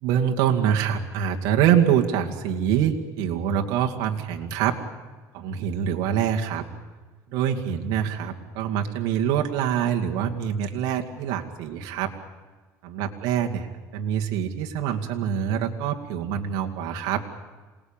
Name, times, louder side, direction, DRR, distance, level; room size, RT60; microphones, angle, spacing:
voice 1, 0.0-4.8 5.3-6.6 7.3-12.1 12.8-13.7 13.9-17.2, right 9 dB, 80° right, 1 dB, 2.3 m, -25 dB
27.0 x 19.5 x 9.0 m, 1.3 s
cardioid pair, 125°, 7 cm